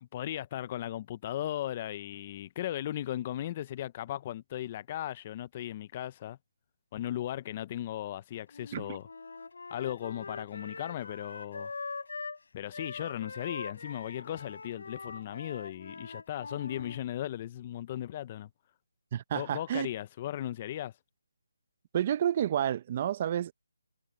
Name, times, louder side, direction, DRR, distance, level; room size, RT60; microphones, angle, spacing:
voice 1, 0.0-6.4 6.9-9.0 9.7-11.7 12.5-18.5 19.3-20.9, left 12 dB, 25° left, 0.5 m, -37 dB
Wind instrument woodwind instrument, 8.5-12.4 12.7-17.0, left 4 dB, 70° left, 3.5 m, -43 dB
voice 2, 19.1-19.9 21.9-23.5, right 10 dB, 25° right, 0.5 m, -30 dB
hypercardioid pair, 170°, 0 cm